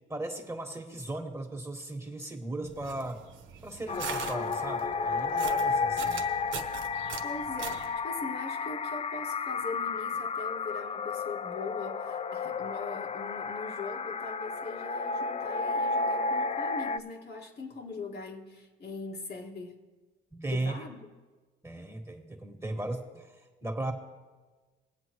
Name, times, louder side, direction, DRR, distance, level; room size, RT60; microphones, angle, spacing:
voice 1, 0.1-3.2 3.6-6.2 20.3-20.7 21.6-23.9, right 2 dB, 15° right, 3 dB, 1.7 m, -37 dB
sound 1, 2.6-8.0, right 7 dB, 75° right, 1.0 m, -42 dB
sound 2, 3.9-17.0, left 4 dB, 30° left, 0.5 m, -32 dB
voice 2, 7.2-19.7 20.5-21.1, left 3 dB, 55° left, 0 dB, 1.9 m, -41 dB
21.0 x 8.2 x 3.1 m, 1.3 s
cardioid pair, 90°, 20 cm